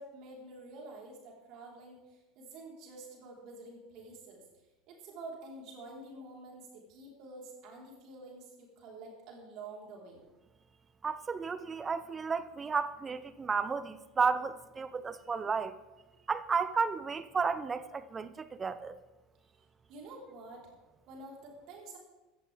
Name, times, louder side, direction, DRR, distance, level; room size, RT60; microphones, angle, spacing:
voice 1, 0.0-4.4 4.9-10.2 19.9-20.7 21.1-22.0, right 2 dB, 45° right, -1 dB, 4.5 m, -48 dB
voice 2, 11.0-15.8 16.3-19.0, right 5 dB, 20° right, 14 dB, 0.9 m, -33 dB
15.5 x 14.0 x 3.6 m, 1.1 s
figure-of-eight pair, 75°, 0 cm